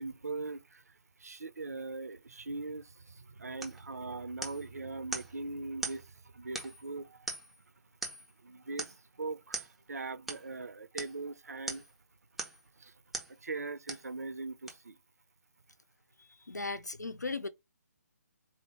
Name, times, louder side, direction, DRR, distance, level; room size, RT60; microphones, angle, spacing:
voice 1, 0.0-7.4 8.4-11.8 12.8-12.9 13.3-15.0, right 3 dB, 65° right, 0.6 m, -41 dB
sound 1, 3.6-3.8 4.4-4.7 5.1-5.3 5.8-6.0 6.6-6.9 7.3-7.6 8.0-8.3 8.8-9.0 9.5-9.7 10.3-10.4 11.0-11.2 11.7-11.9 12.4-12.7 13.1-13.3 13.9-14.1 14.7-14.8, right 2 dB, ahead, 0.5 m, -40 dB
voice 2, 16.5-17.5, left 3 dB, 80° left, 0.6 m, -36 dB
4.2 x 2.2 x 4.1 m
figure-of-eight pair, 140°, 9 cm